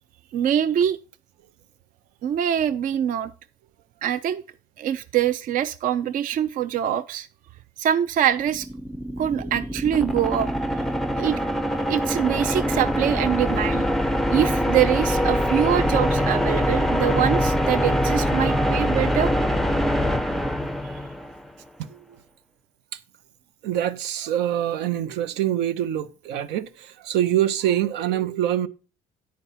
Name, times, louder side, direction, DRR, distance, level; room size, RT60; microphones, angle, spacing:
voice 1, 0.3-1.0 2.2-3.3 4.0-4.4 4.8-7.3 7.8-8.7 9.2-10.5 11.1-11.4 11.7-13.9 14.3-19.5 20.8-20.9, right 10 dB, 55° right, 0.4 m, -24 dB
sound 1, 8.3-21.5, equal, ahead, 0.4 m, -24 dB
voice 2, 23.6-28.7, right 11 dB, 85° right, 0.7 m, -25 dB
9.7 x 4.6 x 5.6 m
cardioid pair, 110°, 17 cm